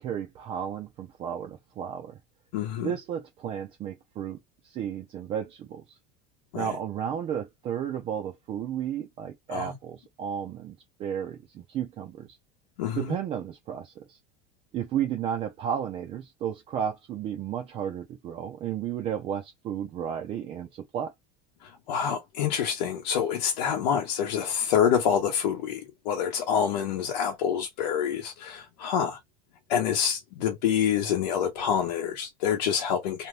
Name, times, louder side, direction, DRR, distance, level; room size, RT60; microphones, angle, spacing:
voice 1, 0.0-2.2 2.8-4.4 4.6-5.8 6.5-12.3 13.0-14.2 14.7-21.1, right 9 dB, 25° right, 0.4 m, -33 dB
voice 2, 2.5-2.9 6.5-6.8 9.5-9.7 12.8-13.1 21.6-29.2 29.7-33.3, left 8 dB, 85° left, 0.9 m, -27 dB
2.7 x 2.2 x 3.2 m
supercardioid pair, 160°, 21 cm